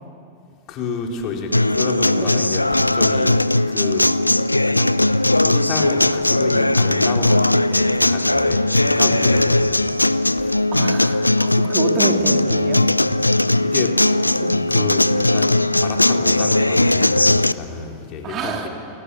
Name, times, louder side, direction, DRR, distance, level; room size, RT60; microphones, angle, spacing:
voice 1, 0.7-3.4 3.7-4.0 4.7-4.9 5.4-10.6 13.6-13.9 14.7-18.7, left 5 dB, 40° left, 1 dB, 4.3 m, -30 dB
Acoustic guitar, 1.5-17.5, left 1 dB, 85° left, 0.5 m, -18 dB
voice 2, 10.7-12.8 14.4-14.6 18.2-18.7, right 5 dB, 30° right, 3 dB, 3.2 m, -27 dB
29.5 x 22.0 x 8.6 m, 2.5 s
figure-of-eight pair, 90°, 0 cm